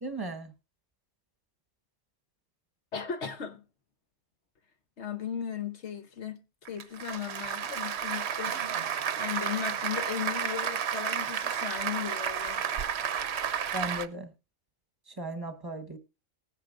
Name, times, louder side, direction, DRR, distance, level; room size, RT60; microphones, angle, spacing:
voice 1, 0.0-0.5 13.7-14.3 15.2-16.0, right 1 dB, 20° right, 1.2 m, -36 dB
voice 2, 2.9-3.6 5.0-6.4 6.7-8.6 9.2-12.7, left 8 dB, 60° left, 1.3 m, -36 dB
Applause, 6.7-14.1, right 8 dB, 60° right, 0.9 m, -32 dB
19.5 x 9.8 x 2.5 m
omnidirectional pair, 1.4 m